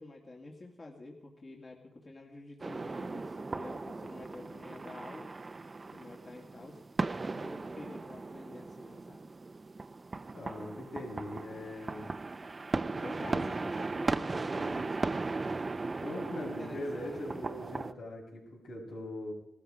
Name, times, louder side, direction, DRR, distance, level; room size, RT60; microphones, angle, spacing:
voice 1, 0.0-5.3 5.9-6.8 7.2-9.2 12.9-15.2 16.2-17.4, left 2 dB, 45° left, 0 dB, 2.5 m, -48 dB
sound 1, 2.6-17.9, right 3 dB, 40° right, 0.7 m, -37 dB
voice 2, 10.3-12.1 13.2-13.4 16.0-19.3, left 1 dB, 90° left, -2 dB, 5.9 m, -41 dB
19.0 x 13.5 x 5.1 m, 0.85 s
cardioid pair, 60°, 0 cm